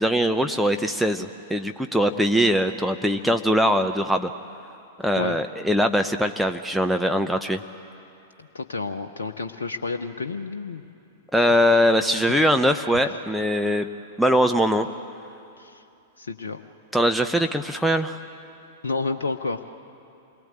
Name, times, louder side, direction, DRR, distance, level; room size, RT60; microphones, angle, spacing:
voice 1, 0.0-4.3 5.0-7.6 11.3-13.9 14.2-14.9 16.9-18.2, equal, ahead, 4 dB, 0.8 m, -21 dB
voice 2, 8.5-10.9 12.1-12.4 12.9-13.2 15.6-15.8 16.2-16.6 18.8-19.6, left 4 dB, 70° left, 6 dB, 0.9 m, -30 dB
28.0 x 20.5 x 8.9 m, 2.7 s
figure-of-eight pair, 100°, 0 cm